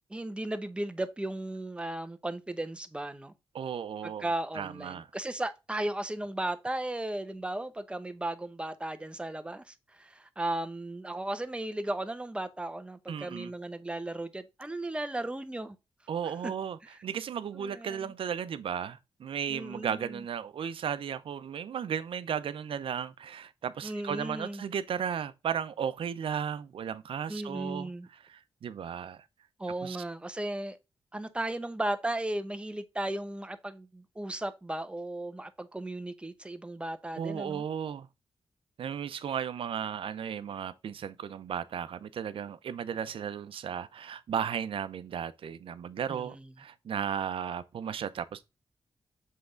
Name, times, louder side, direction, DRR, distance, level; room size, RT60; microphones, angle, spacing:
voice 1, 0.1-3.3 4.0-15.8 16.2-16.5 16.9-17.0 17.5-18.1 19.5-20.2 23.8-24.6 27.3-28.1 29.6-30.8 31.1-37.6 46.1-46.5, right 1 dB, 10° right, 0.9 m, -36 dB
voice 2, 3.5-4.3 4.5-5.1 13.1-13.5 16.1-27.9 28.2-29.2 29.8-30.0 37.2-38.1 38.8-48.4, right 8 dB, 80° right, 0.6 m, -35 dB
7.6 x 3.5 x 3.8 m
wide cardioid pair, 110°, 9 cm